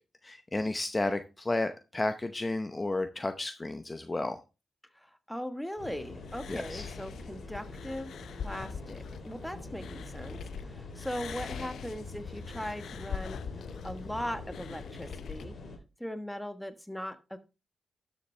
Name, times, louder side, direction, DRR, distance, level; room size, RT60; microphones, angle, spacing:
voice 1, 0.2-4.4 6.5-6.9, left 2 dB, 25° left, 9 dB, 0.8 m, -32 dB
voice 2, 4.9-13.4 13.8-15.5 16.0-17.4, equal, 5° left, 9 dB, 1.3 m, -39 dB
sound 1, 5.8-15.8, left 3 dB, 60° left, 3.4 m, -44 dB
sound 2, 6.3-10.6 10.9-15.4, left 7 dB, 80° left, 0.6 m, -43 dB
11.5 x 7.2 x 3.3 m, 0.29 s
cardioid pair, 75°, 0 cm